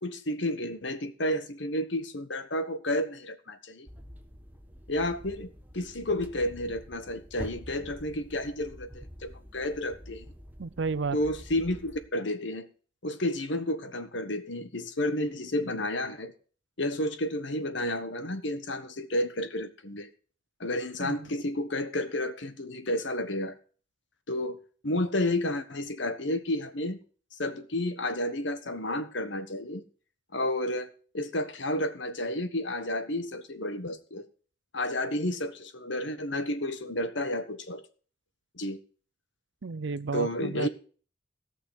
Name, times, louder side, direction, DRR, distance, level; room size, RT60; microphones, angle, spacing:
voice 1, 0.0-3.9 4.9-10.3 11.1-12.7 13.0-16.3 16.8-20.1 20.6-23.6 24.3-27.0 27.3-29.8 30.3-34.2 34.7-37.8 38.6-38.8 40.1-40.7, left 1 dB, 65° left, 11 dB, 1.3 m, -31 dB
sound 1, 3.9-12.1, equal, 10° right, 1.0 m, -47 dB
voice 2, 10.6-11.2 21.0-21.3 39.6-40.7, right 4 dB, 60° right, 16 dB, 0.5 m, -32 dB
17.5 x 6.1 x 6.3 m, 0.41 s
head